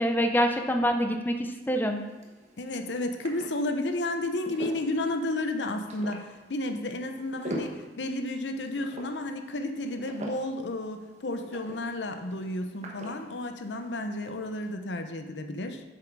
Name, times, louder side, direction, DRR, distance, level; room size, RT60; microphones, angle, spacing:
voice 1, 0.0-2.0, equal, 10° left, 5 dB, 0.6 m, -26 dB
sound 1, 1.8-14.7, equal, 40° right, 1.3 m, -44 dB
voice 2, 2.6-15.8, left 2 dB, 80° left, 7 dB, 0.8 m, -32 dB
7.7 x 6.7 x 4.7 m, 1.2 s
head